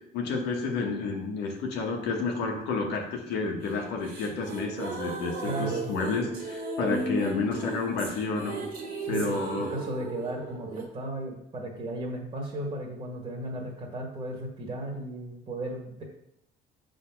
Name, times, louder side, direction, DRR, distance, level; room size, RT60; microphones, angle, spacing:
voice 1, 0.1-8.6 9.1-9.7, left 4 dB, 85° left, 1 dB, 1.6 m, -30 dB
sound 1, 3.6-10.8, right 3 dB, 60° right, 1.9 m, -35 dB
voice 2, 5.4-5.9 9.0-16.0, right 1 dB, 35° right, -2 dB, 1.6 m, -35 dB
6.6 x 3.9 x 5.9 m, 0.81 s
cardioid pair, 110°, 17 cm